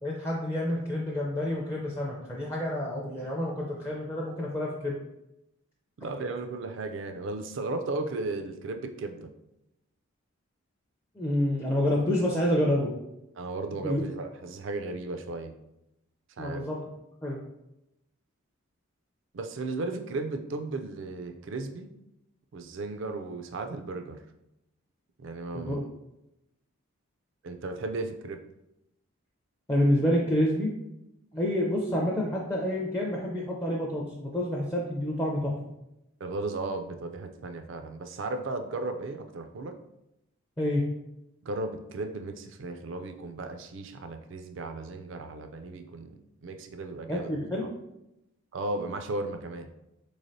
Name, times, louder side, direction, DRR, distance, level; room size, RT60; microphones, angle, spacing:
voice 1, 0.0-5.0 11.2-12.9 13.7-14.0 16.4-16.8 17.2-17.4 25.5-25.8 29.7-30.7 31.3-35.5 40.6-40.8 47.1-47.6, left 1 dB, 15° left, -3 dB, 0.4 m, -28 dB
voice 2, 6.0-9.3 13.4-15.5 16.4-16.6 19.3-21.9 22.5-24.2 25.2-25.8 27.4-28.4 36.2-39.8 41.4-47.3 48.5-49.7, right 2 dB, 60° right, 7 dB, 0.4 m, -35 dB
4.3 x 3.2 x 2.6 m, 0.87 s
head